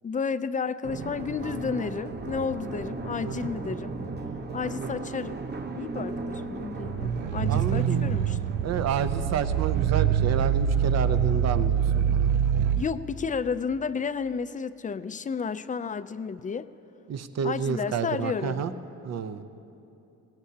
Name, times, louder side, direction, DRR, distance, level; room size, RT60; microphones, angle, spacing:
voice 1, 0.0-3.9 4.5-5.4 5.7-8.4 12.8-16.7 17.4-18.6, left 5 dB, 25° left, 13 dB, 0.5 m, -31 dB
sound 1, 0.8-12.2 12.6-12.7, right 3 dB, 35° right, 1.0 m, -38 dB
voice 2, 3.2-3.5 4.8-5.1 7.5-8.0 8.6-11.8 12.1-12.3 17.1-18.7 19.0-19.4, right 7 dB, 60° right, 11 dB, 0.8 m, -30 dB
sound 2, 6.8-12.9, right 8 dB, 90° right, 0.5 m, -25 dB
19.0 x 17.5 x 2.9 m, 2.8 s
cardioid pair, 90°, 30 cm